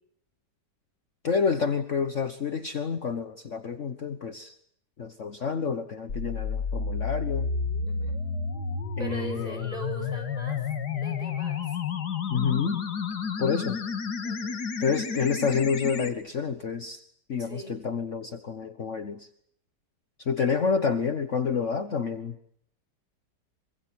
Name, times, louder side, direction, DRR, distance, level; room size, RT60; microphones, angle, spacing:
voice 1, 1.2-4.5 5.0-7.5 9.0-9.7 12.3-12.8 13.4-13.8 14.8-17.0 17.3-19.3 20.2-22.6, left 6 dB, 50° left, 9 dB, 1.5 m, -28 dB
sound 1, 6.1-16.1, left 5 dB, 70° left, 2.6 m, -31 dB
voice 2, 9.0-10.6 10.9-11.7 14.2-14.6 17.4-17.8, right 2 dB, 20° right, 5 dB, 8.1 m, -40 dB
25.5 x 25.0 x 7.9 m, 0.68 s
omnidirectional pair, 1.8 m